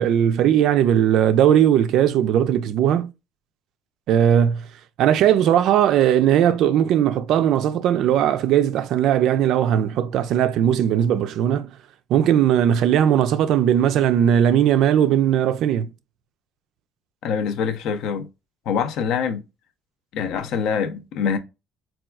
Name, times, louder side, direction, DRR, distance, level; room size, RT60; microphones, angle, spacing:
voice 1, 0.0-3.1 4.1-4.7 5.0-11.7 12.1-15.9, right 10 dB, 60° right, 0.3 m, -18 dB
voice 2, 17.2-18.3 18.7-19.4 20.1-21.4, left 6 dB, 60° left, 0.5 m, -24 dB
4.1 x 2.3 x 2.3 m
cardioid pair, 145°, 0 cm